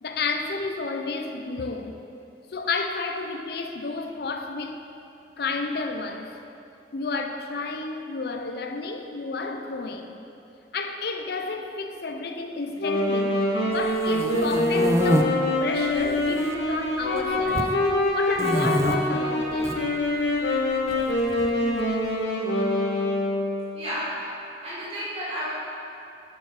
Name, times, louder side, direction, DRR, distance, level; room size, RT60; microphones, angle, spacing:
voice 1, 0.0-2.0 2.5-4.9 5.4-6.3 6.9-10.2 10.7-17.7 18.1-19.8, left 3 dB, 60° left, 5 dB, 0.5 m, -31 dB
Wind instrument woodwind instrument, 12.8-23.7, left 1 dB, 85° left, 1.5 m, -25 dB
sound 1, 13.8-15.2 15.9-16.5 16.8-17.7 18.3-19.0 19.5-19.8 20.9-21.8, right 1 dB, 15° right, 0.4 m, -26 dB
voice 2, 23.7-24.2 24.6-25.4, equal, 35° right, -11 dB, 2.0 m, -32 dB
7.2 x 6.3 x 4.8 m, 2.7 s
head